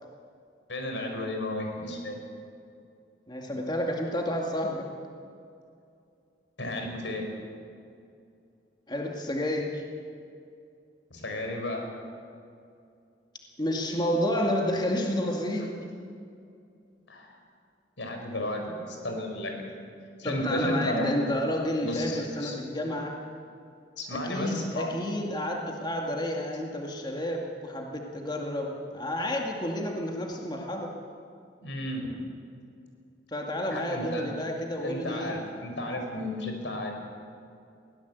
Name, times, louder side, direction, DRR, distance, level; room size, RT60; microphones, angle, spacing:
voice 1, 0.7-2.2 6.6-7.3 11.1-11.8 17.1-17.3 18.0-19.5 20.2-21.1 21.8-22.5 24.0-24.9 26.8-26.9 31.6-32.1 33.7-34.3 34.8-37.0, left 1 dB, 85° left, 3 dB, 4.9 m, -33 dB
voice 2, 3.3-4.9 8.9-9.8 13.6-15.8 20.2-23.2 24.1-30.9 33.3-35.4, left 1 dB, 25° left, 0 dB, 2.1 m, -30 dB
22.0 x 17.0 x 8.2 m, 2.4 s
head